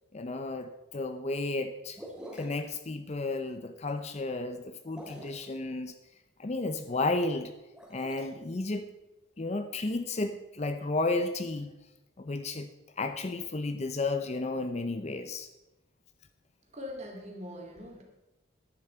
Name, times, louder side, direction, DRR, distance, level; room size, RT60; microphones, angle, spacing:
voice 1, 0.1-2.0 2.3-5.9 6.4-7.5 7.9-9.0 9.4-11.7 12.2-15.5, left 2 dB, 35° left, 9 dB, 0.6 m, -33 dB
sound 1, 1.9-2.7 4.8-5.5 7.6-8.2, equal, 5° right, 2.5 m, -45 dB
voice 2, 16.7-18.0, left 1 dB, 35° right, 0 dB, 2.6 m, -42 dB
10.5 x 10.5 x 4.5 m, 1.0 s
head